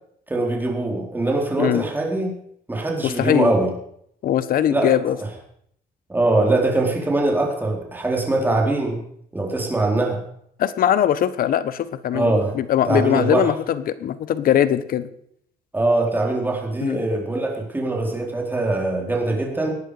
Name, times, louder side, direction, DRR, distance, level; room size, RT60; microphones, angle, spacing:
voice 1, 0.3-2.4 2.7-3.7 4.7-4.9 5.2-5.3 6.1-9.0 9.3-10.2 12.1-12.5 12.9-13.5 15.7-19.7, right 2 dB, 10° right, 0 dB, 4.2 m, -22 dB
voice 2, 3.0-3.5 4.2-5.2 10.6-15.1 16.8-17.0, left 10 dB, 60° left, 15 dB, 1.2 m, -21 dB
18.5 x 11.0 x 5.1 m, 0.69 s
cardioid pair, 110°, 17 cm